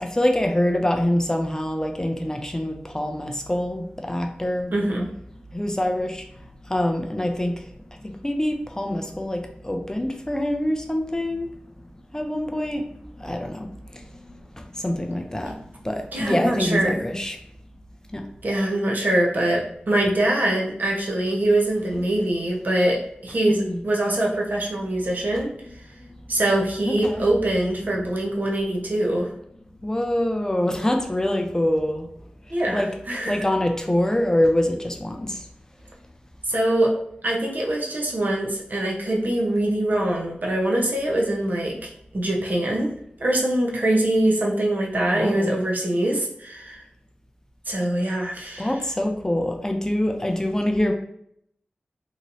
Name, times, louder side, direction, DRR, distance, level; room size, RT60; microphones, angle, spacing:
voice 1, 0.0-4.7 5.5-6.2 6.7-7.6 8.0-11.5 12.1-12.8 13.2-14.1 14.8-15.6 15.8-17.4 18.1-18.2 23.5-23.8 25.7-25.8 26.0-26.1 26.9-27.3 29.8-32.1 32.7-32.9 33.3-35.4 45.1-45.6 48.6-50.9, left 1 dB, 15° left, 4 dB, 0.4 m, -25 dB
voice 2, 4.7-5.1 15.4-15.5 16.1-17.0 18.4-23.6 23.8-25.5 26.3-29.3 32.5-33.4 36.5-36.9 37.2-42.9 43.2-46.8 47.7-48.7, right 1 dB, 60° right, -2 dB, 0.7 m, -23 dB
3.0 x 2.7 x 2.5 m, 0.73 s
wide cardioid pair, 55°, 3 cm